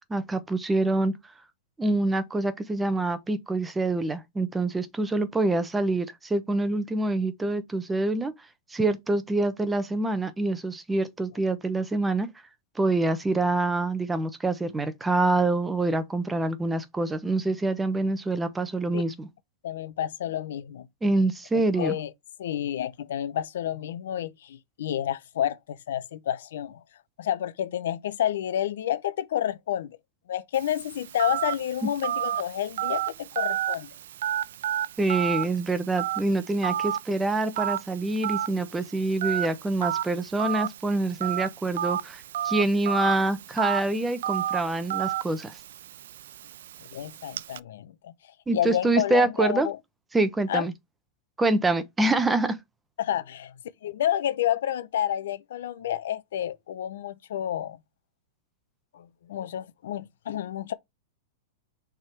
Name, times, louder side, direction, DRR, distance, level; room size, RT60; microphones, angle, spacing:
voice 1, 0.1-1.1 1.8-8.3 8.7-12.3 12.8-19.3 21.0-22.0 35.0-45.6 48.5-49.7 50.1-50.7 51.4-52.6, right 2 dB, 10° right, 0.8 m, -26 dB
voice 2, 19.6-20.9 21.8-22.1 22.4-26.8 27.2-30.0 30.3-33.9 46.9-48.1 48.5-49.8 50.5-50.7 53.0-53.5 53.8-57.8 58.9-60.7, left 11 dB, 75° left, 0.7 m, -29 dB
Telephone, 30.5-47.6, right 11 dB, 75° right, 0.4 m, -32 dB
6.3 x 3.7 x 4.6 m
supercardioid pair, 145°, 0 cm